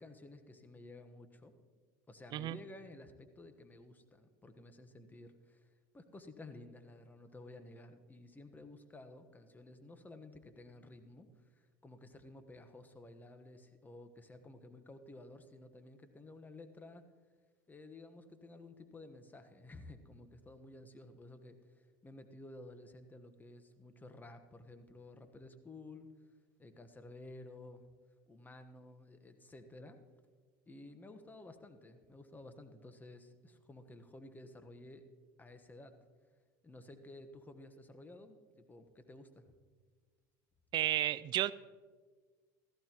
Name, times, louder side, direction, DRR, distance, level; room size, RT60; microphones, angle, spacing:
voice 1, 0.0-1.5 2.1-5.7 5.9-17.1 17.7-26.1 26.6-27.9 28.3-30.0 30.7-35.0 35.4-36.0 36.6-39.5, left 2 dB, 15° left, 8 dB, 1.2 m, -53 dB
voice 2, 40.7-41.5, right 13 dB, 45° right, 18 dB, 0.4 m, -32 dB
16.5 x 14.0 x 3.0 m, 1.5 s
hypercardioid pair, 85°, 10 cm